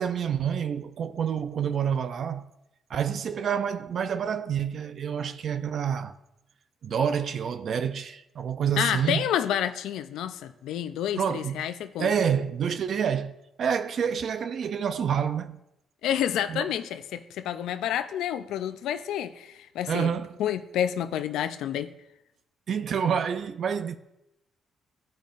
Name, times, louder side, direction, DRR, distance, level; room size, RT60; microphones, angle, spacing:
voice 1, 0.0-2.5 2.9-6.1 6.8-9.2 11.2-11.6 12.0-15.6 16.5-16.7 19.9-20.4 22.7-24.0, right 7 dB, 60° right, 0.5 m, -28 dB
voice 2, 8.8-12.1 16.0-20.1 20.4-21.9, left 10 dB, 85° left, 0.4 m, -29 dB
15.5 x 5.3 x 2.5 m
cardioid pair, 90°, 0 cm